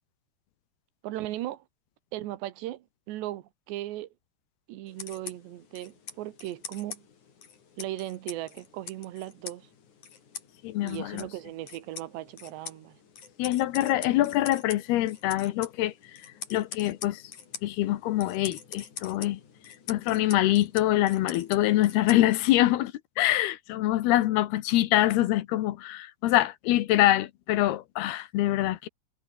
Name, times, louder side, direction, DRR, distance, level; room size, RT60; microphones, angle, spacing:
voice 1, 1.0-1.6 2.1-4.1 4.7-7.1 7.8-9.7 10.8-13.0, right 15 dB, 85° right, 3.5 m, -37 dB
sound 1, 4.9-22.7, left 7 dB, 45° left, 4.3 m, -45 dB
voice 2, 10.6-11.2 13.4-15.9 16.5-17.2 17.6-19.4 19.9-28.9, left 15 dB, 75° left, 2.9 m, -25 dB
omnidirectional pair, 4.9 m